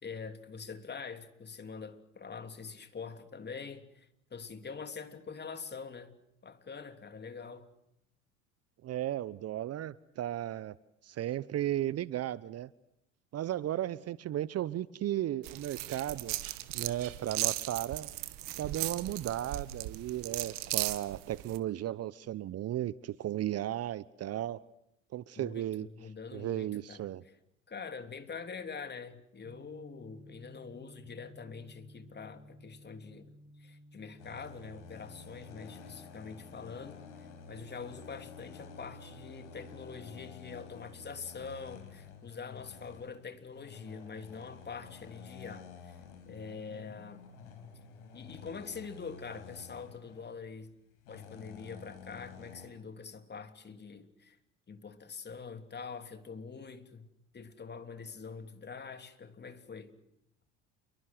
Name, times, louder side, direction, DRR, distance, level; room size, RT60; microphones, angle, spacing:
voice 1, 0.0-6.1 6.4-7.7 25.4-27.1 27.7-46.0 46.3-47.3 48.1-50.8 51.1-54.4 54.7-59.9, left 5 dB, 25° left, 3.2 m, -45 dB
voice 2, 8.8-10.8 11.0-12.7 13.3-16.4 16.7-18.1 18.6-24.6 25.1-25.9 26.3-27.2, right 12 dB, 40° right, 1.0 m, -35 dB
sound 1, 15.4-21.6, right 17 dB, 60° right, 1.9 m, -37 dB
sound 2, 29.4-42.9, equal, 25° right, 2.7 m, -58 dB
sound 3, 34.2-52.7, left 6 dB, 75° left, 5.2 m, -51 dB
29.0 x 23.5 x 7.9 m
hypercardioid pair, 70°, 37 cm